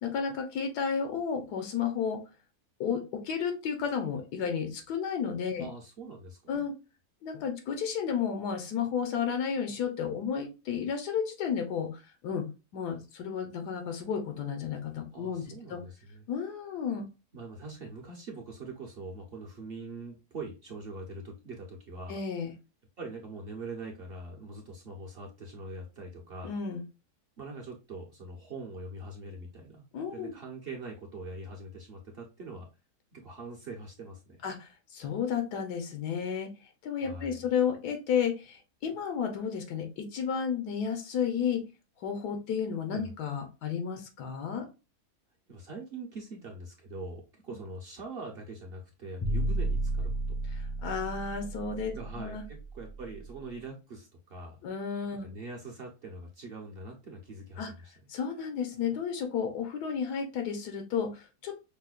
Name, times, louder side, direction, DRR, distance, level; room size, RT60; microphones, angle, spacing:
voice 1, 0.0-2.2 2.8-5.7 6.5-6.7 7.2-12.5 12.7-15.4 15.7-15.8 16.3-17.0 22.1-22.5 26.4-26.8 29.9-30.3 34.4-36.5 36.8-41.6 42.0-44.7 50.6-51.9 52.2-52.4 54.6-55.3 57.6-57.7 58.1-61.5, left 7 dB, 85° left, 5 dB, 1.3 m, -32 dB
voice 2, 5.6-6.6 15.1-16.3 17.3-22.2 23.0-26.6 27.4-29.8 30.1-32.7 33.1-34.4 37.0-37.4 42.9-43.1 45.5-50.4 51.9-54.6 55.1-57.9, right 2 dB, 50° right, 0 dB, 0.7 m, -43 dB
sound 1, 49.2-53.3, right 2 dB, 20° left, 0.4 m, -32 dB
5.4 x 2.1 x 2.3 m, 0.30 s
omnidirectional pair, 1.7 m